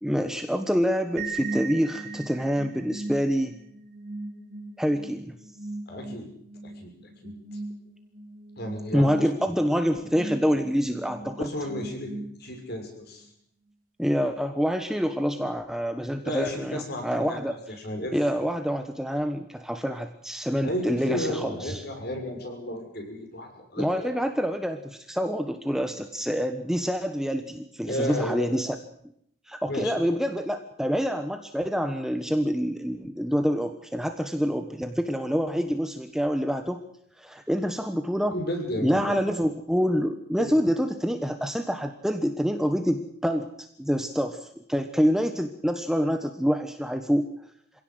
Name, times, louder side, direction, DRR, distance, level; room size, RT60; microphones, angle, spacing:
voice 1, 0.0-3.6 4.8-5.3 8.9-11.5 14.0-17.6 18.1-21.8 23.8-28.8 29.5-36.8 37.2-38.4 38.8-47.3, equal, ahead, 6 dB, 1.2 m, -26 dB
sound 1, 1.2-12.8, right 3 dB, 40° right, 3.0 m, -39 dB
voice 2, 5.9-6.3 6.6-6.9 7.2-7.3 8.6-9.3 11.2-12.1 12.4-13.3 16.2-17.4 17.8-18.2 20.6-24.1 27.9-28.6 29.7-29.9 38.3-39.2 40.4-40.5, left 1 dB, 50° left, 4 dB, 6.4 m, -33 dB
25.5 x 17.0 x 7.9 m, 0.70 s
head